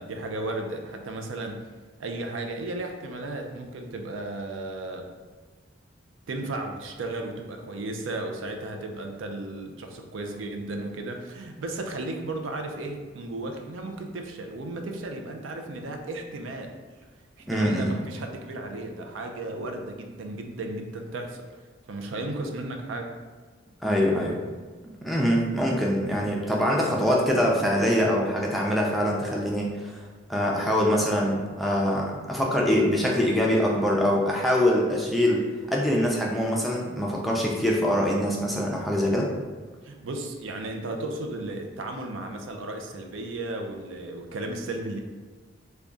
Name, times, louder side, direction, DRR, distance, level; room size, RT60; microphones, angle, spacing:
voice 1, 0.0-1.7 2.0-5.1 6.3-16.8 17.4-21.5 21.9-23.1 39.8-45.0, right 2 dB, 90° right, 3 dB, 0.5 m, -34 dB
voice 2, 17.5-17.9 23.8-24.4 25.0-30.0 30.3-35.4 35.7-39.3, equal, ahead, -3 dB, 0.4 m, -24 dB
3.5 x 2.2 x 3.8 m, 1.4 s
head